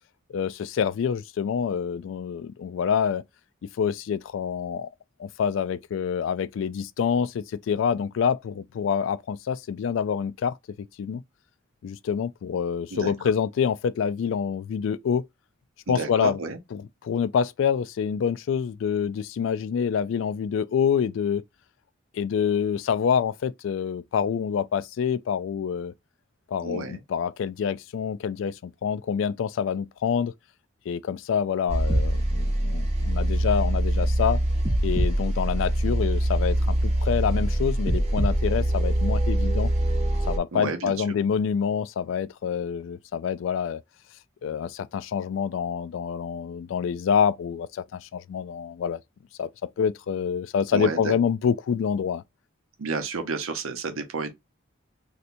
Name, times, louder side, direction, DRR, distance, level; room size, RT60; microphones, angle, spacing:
voice 1, 0.3-3.2 3.8-4.9 5.2-10.6 11.0-11.2 11.8-15.3 15.9-16.4 16.7-21.4 22.1-25.9 26.5-30.3 30.9-34.4 34.8-39.7 40.3-43.8 44.4-49.0 49.4-49.5 49.8-52.2, left 7 dB, 70° left, 0.3 m, -26 dB
voice 2, 15.9-16.6 26.6-27.0 40.5-40.9 50.7-51.1 52.8-54.3, right 4 dB, 90° right, 0.8 m, -31 dB
sound 1, 31.7-40.4, right 1 dB, 30° right, 0.8 m, -24 dB
3.2 x 2.8 x 2.5 m
head